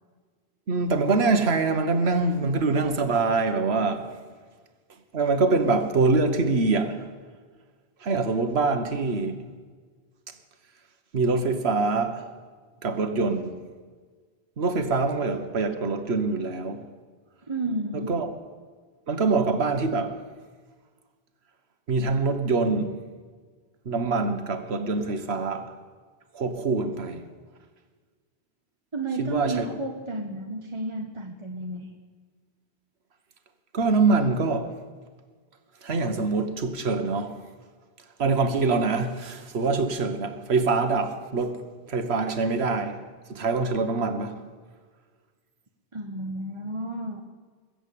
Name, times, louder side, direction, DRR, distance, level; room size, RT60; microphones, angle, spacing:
voice 1, 0.7-4.1 5.1-7.1 8.0-9.4 11.1-12.3 12.8-13.6 14.6-16.8 17.9-18.3 19.1-20.2 21.9-23.0 23.8-25.7 26.3-27.3 29.2-29.6 33.7-34.7 35.8-37.4 38.2-41.6 41.9-43.0 43.3-44.3, right 3 dB, 80° right, 1.5 m, -24 dB
voice 2, 17.5-18.1 28.9-31.9 45.9-47.2, right 2 dB, 30° right, 1.2 m, -32 dB
21.0 x 7.9 x 8.5 m
omnidirectional pair, 1.1 m